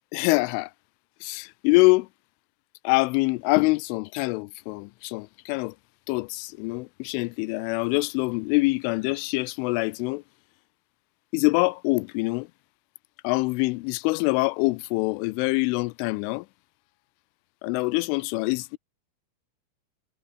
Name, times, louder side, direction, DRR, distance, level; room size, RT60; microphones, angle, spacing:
voice 1, 0.1-0.7 1.2-2.1 2.8-5.7 6.1-10.2 11.3-12.5 13.2-16.5 17.6-18.8, left 25 dB, 85° left, 2.8 m, -25 dB
omnidirectional pair, 5.9 m